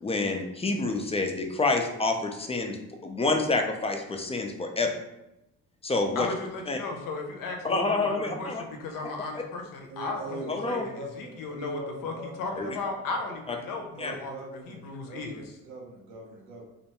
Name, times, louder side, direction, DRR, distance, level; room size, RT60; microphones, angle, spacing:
voice 1, 0.0-2.8 3.0-4.9 5.8-6.3 6.7-6.8 7.6-8.6 10.5-10.9 12.6-12.7 14.0-14.1, left 3 dB, 15° left, 4 dB, 0.4 m, -27 dB
voice 2, 6.2-15.5, left 3 dB, 60° left, 2 dB, 0.7 m, -36 dB
voice 3, 9.9-12.7 13.0-13.2 13.9-16.7, right 2 dB, 85° right, -1 dB, 0.7 m, -42 dB
2.6 x 2.2 x 2.9 m, 0.91 s
hypercardioid pair, 45°, 36 cm